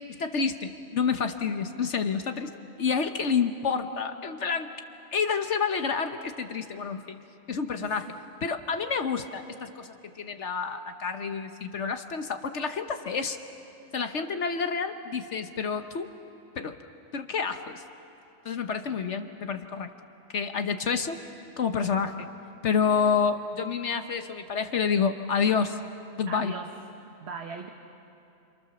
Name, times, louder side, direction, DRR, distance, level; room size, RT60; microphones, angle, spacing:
voice 1, 0.0-4.7 5.1-7.2 7.5-8.1 8.4-13.4 13.9-16.1 16.6-16.7 17.1-17.8 18.4-19.9 20.3-21.2 21.6-22.3 22.6-25.8 26.2-26.5, left 6 dB, 65° left, 7 dB, 1.2 m, -29 dB
voice 2, 26.3-26.7 27.2-27.7, right 5 dB, 55° right, 3 dB, 1.4 m, -38 dB
28.0 x 27.5 x 6.9 m, 2.8 s
omnidirectional pair, 1.3 m